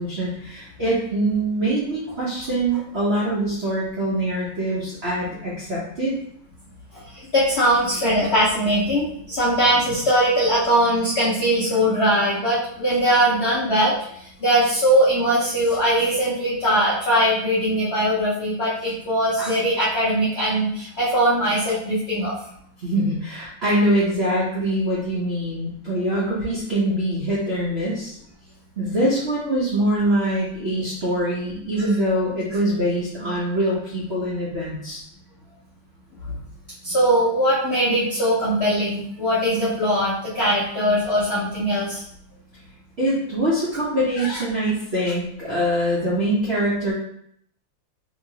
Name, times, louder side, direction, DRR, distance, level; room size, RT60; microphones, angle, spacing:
voice 1, 0.0-6.1 22.8-28.2 28.8-35.0 43.0-46.9, right 1 dB, 70° right, -7 dB, 0.6 m, -23 dB
voice 2, 7.1-13.9 14.4-22.3 36.8-42.0 44.2-44.4, equal, 70° left, -8 dB, 0.6 m, -21 dB
2.9 x 2.8 x 2.7 m, 0.70 s
omnidirectional pair, 2.2 m